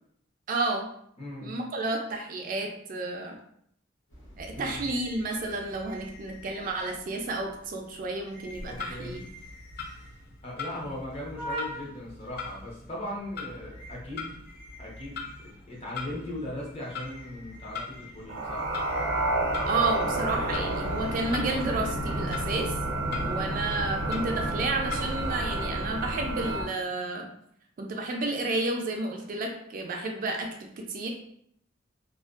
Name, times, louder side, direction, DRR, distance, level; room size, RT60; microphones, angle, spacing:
voice 1, 0.5-0.9 1.4-3.4 4.4-9.3 19.6-22.7 23.2-27.3 27.8-31.1, right 2 dB, 45° right, 2 dB, 0.3 m, -31 dB
voice 2, 1.2-1.5 4.6-4.9 8.6-9.2 10.4-14.4 14.8-18.7 23.0-23.3, left 1 dB, 30° left, -4 dB, 0.7 m, -39 dB
sound 1, 4.1-23.0, equal, 70° left, 0.9 m, -47 dB
Clock, 8.4-25.6, left 4 dB, 55° left, 0.4 m, -42 dB
sound 2, 18.3-26.6, right 2 dB, 90° right, 0.6 m, -30 dB
2.4 x 2.1 x 2.3 m, 0.68 s
head